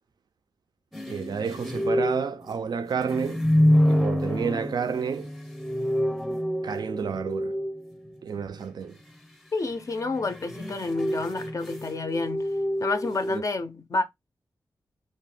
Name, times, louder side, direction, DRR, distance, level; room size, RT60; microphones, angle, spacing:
sound 1, 0.9-8.2 10.1-13.4, equal, ahead, 0.6 m, -27 dB
voice 1, 1.1-3.4 3.9-5.3 6.6-7.5 8.2-9.0 13.3-13.4, right 6 dB, 65° right, 0.4 m, -30 dB
voice 2, 9.5-12.5 12.8-14.0, left 3 dB, 45° left, 0.4 m, -29 dB
2.6 x 2.1 x 3.2 m
wide cardioid pair, 80°, 8 cm